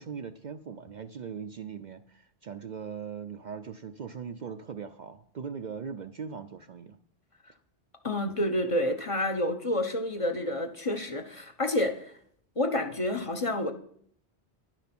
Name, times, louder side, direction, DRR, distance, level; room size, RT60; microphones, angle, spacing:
voice 1, 0.0-7.0, right 6 dB, 55° right, 8 dB, 0.6 m, -40 dB
voice 2, 8.0-12.1 12.6-13.7, left 1 dB, 30° left, 5 dB, 1.0 m, -29 dB
11.0 x 9.0 x 6.0 m, 0.66 s
omnidirectional pair, 1.1 m